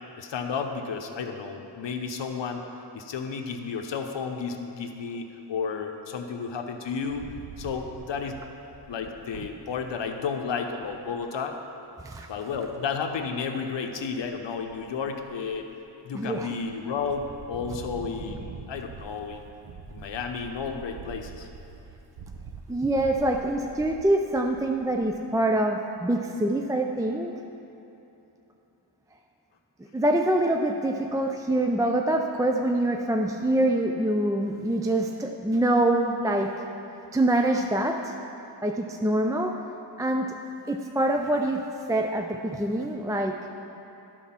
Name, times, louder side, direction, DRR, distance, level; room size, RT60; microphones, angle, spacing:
voice 1, 0.2-2.6 2.9-7.3 7.6-8.4 8.9-11.5 12.3-15.7 16.0-19.5 19.9-21.5, left 5 dB, 85° left, 4 dB, 0.8 m, -32 dB
Wind, 6.9-10.0 10.5-10.6 10.8-11.2 12.7-13.3 13.8-14.3 14.6-15.7 16.2-16.7 17.0-25.2, right 5 dB, 55° right, 0.8 m, -44 dB
voice 2, 16.1-16.6 22.7-27.3 29.9-36.5 37.1-38.1 38.6-39.6 40.0-40.4 40.7-41.6 41.9-43.4, right 1 dB, 10° right, 3 dB, 0.4 m, -25 dB
12.0 x 4.6 x 5.8 m, 3.0 s
wide cardioid pair, 90°, 43 cm